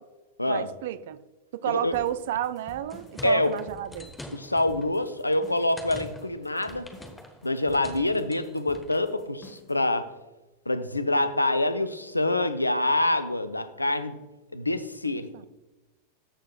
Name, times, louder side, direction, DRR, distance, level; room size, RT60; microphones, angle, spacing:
voice 1, 0.5-1.2 1.5-4.1 15.1-15.4, right 12 dB, 55° right, 0.4 m, -31 dB
sound 1, 1.9-9.8, left 1 dB, 25° left, 1.5 m, -49 dB
sound 2, 2.7-9.1, left 1 dB, 10° left, 1.0 m, -46 dB
voice 2, 3.2-3.5 4.3-6.9 7.4-10.1 10.7-14.2 14.5-15.5, left 2 dB, 85° left, 0.5 m, -26 dB
13.5 x 6.6 x 2.3 m
figure-of-eight pair, 90°, 0 cm